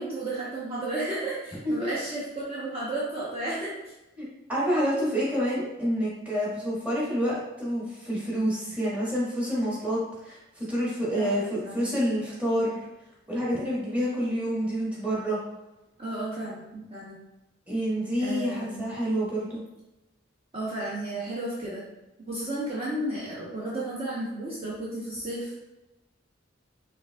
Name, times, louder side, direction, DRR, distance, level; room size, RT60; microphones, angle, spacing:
voice 1, 0.0-3.9 11.1-11.8 16.0-17.2 18.2-18.8 20.5-21.8 22.3-25.5, right 1 dB, 30° right, -8 dB, 0.8 m, -33 dB
voice 2, 4.2-12.9 13.3-15.4 17.7-19.6, equal, 5° right, -7 dB, 1.2 m, -28 dB
5.2 x 3.4 x 2.2 m, 0.98 s
head